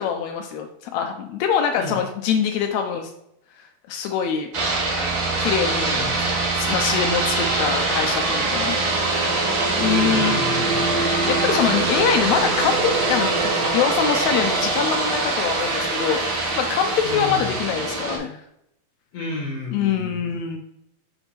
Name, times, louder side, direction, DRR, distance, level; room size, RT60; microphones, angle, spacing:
voice 1, 0.0-3.1 3.6-4.5 5.4-8.8 9.7-10.5 11.0-18.4 19.7-20.6, left 7 dB, 85° left, 4 dB, 1.6 m, -24 dB
sound 1, 4.5-18.2, right 3 dB, 50° right, 1.6 m, -23 dB
voice 2, 5.9-6.3 9.8-10.9 17.0-17.5 19.1-20.4, left 2 dB, 55° left, -4 dB, 2.1 m, -31 dB
5.9 x 3.5 x 5.7 m, 0.78 s
omnidirectional pair, 3.9 m